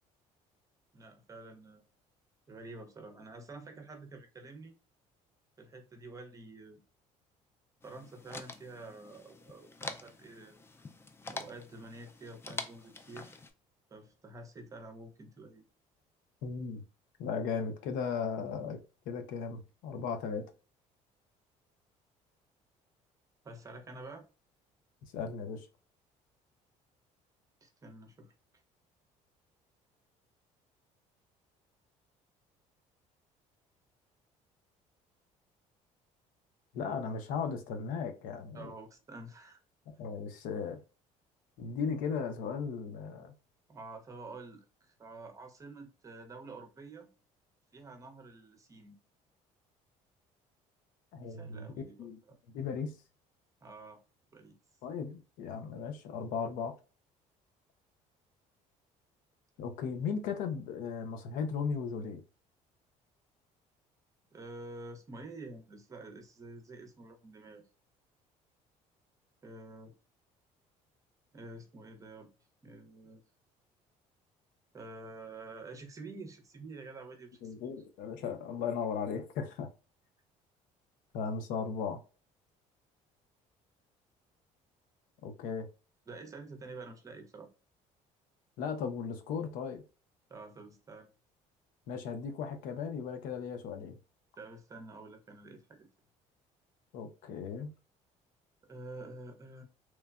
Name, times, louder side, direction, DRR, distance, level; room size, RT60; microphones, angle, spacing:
voice 1, 0.9-1.8 2.5-4.7 5.6-6.8 7.8-10.6 11.3-13.3 13.9-15.6 23.4-24.3 27.6-28.3 38.5-39.6 43.7-47.1 47.7-49.0 51.2-52.4 53.6-54.0 54.3-54.6 64.3-67.7 69.4-69.9 71.3-72.3 72.6-73.2 74.7-77.7 86.1-87.5 90.3-91.1 94.4-95.9 98.6-99.6, right 2 dB, 25° right, 0.7 m, -48 dB
sound 1, 7.8-13.5, left 3 dB, 20° left, 0.4 m, -46 dB
voice 2, 16.4-16.8 17.2-18.8 19.1-20.4 25.1-25.7 36.7-38.7 39.9-40.8 41.6-43.3 51.1-51.7 52.0-52.2 52.5-53.0 54.8-56.7 59.6-62.2 77.4-79.7 81.1-82.0 85.2-85.7 88.6-89.8 91.9-94.0 96.9-97.7, left 6 dB, 80° left, 0.6 m, -36 dB
3.1 x 2.2 x 2.3 m
cardioid pair, 125°, 14 cm